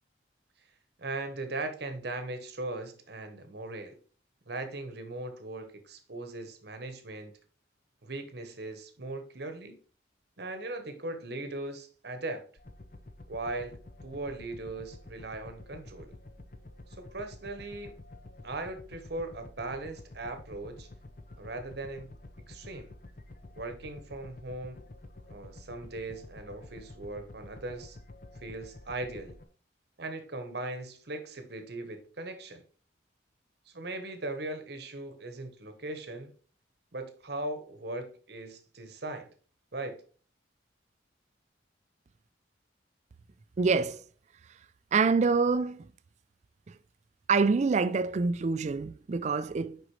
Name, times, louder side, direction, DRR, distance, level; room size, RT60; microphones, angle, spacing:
voice 1, 1.0-4.0 4.5-7.3 8.0-9.8 10.4-12.4 13.3-13.8 14.0-16.1 17.0-17.9 18.4-20.9 21.4-22.1 22.5-22.9 23.6-24.8 25.3-28.0 28.4-29.3 30.0-32.6 33.7-36.3 36.9-39.3 39.7-40.0, right 2 dB, 60° right, 1.0 m, -39 dB
sound 1, 12.6-29.5, left 2 dB, 45° left, 0.7 m, -49 dB
voice 2, 43.6-44.0 44.9-45.9 47.3-49.8, right 4 dB, 35° right, 0.3 m, -26 dB
6.2 x 5.2 x 3.1 m
head